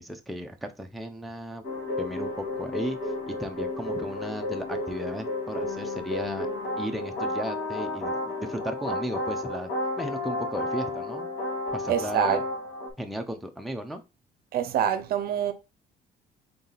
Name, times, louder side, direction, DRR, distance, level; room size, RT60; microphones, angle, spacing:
voice 1, 0.0-1.6 2.0-6.5 6.8-9.7 10.0-11.3 11.7-12.4 13.0-14.0, equal, ahead, 0.6 m, -35 dB
sound 1, 1.6-12.9, left 2 dB, 85° left, 1.8 m, -32 dB
voice 2, 11.9-12.4 14.5-15.5, right 9 dB, 65° right, 0.6 m, -25 dB
4.0 x 2.7 x 3.9 m
cardioid pair, 110°, 17 cm